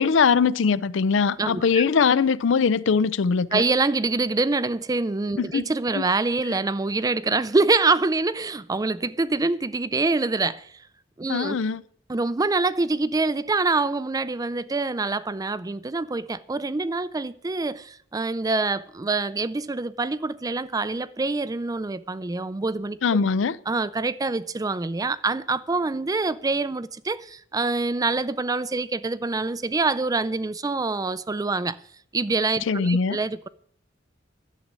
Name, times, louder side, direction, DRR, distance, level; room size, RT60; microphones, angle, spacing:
voice 1, 0.0-3.6 5.4-5.6 6.0-6.1 11.3-11.8 23.0-23.6 32.7-33.2, left 5 dB, 75° left, 0.5 m, -21 dB
voice 2, 1.4-1.8 3.5-10.7 11.2-11.6 12.1-23.0 23.7-31.8 32.1-33.5, right 3 dB, 20° right, 0.4 m, -25 dB
12.0 x 7.4 x 9.5 m
head